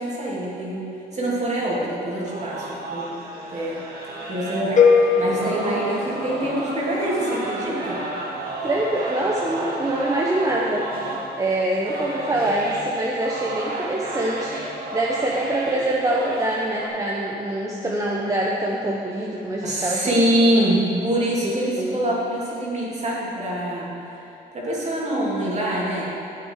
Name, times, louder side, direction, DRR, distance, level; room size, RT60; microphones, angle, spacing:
voice 1, 0.0-3.1 3.5-3.8 4.3-8.0 19.6-23.9 24.5-26.1, right 1 dB, 40° right, -5 dB, 2.9 m, -24 dB
sound 1, 2.2-16.9, right 2 dB, 60° right, 2.1 m, -32 dB
sound 2, 4.8-6.8, left 5 dB, 45° left, 1.1 m, -20 dB
voice 2, 8.6-10.9 11.4-14.6 14.9-20.3 20.6-20.8 21.4-22.0, right 1 dB, 20° right, -3 dB, 1.0 m, -25 dB
12.5 x 7.9 x 4.8 m, 2.7 s
cardioid pair, 110°, 18 cm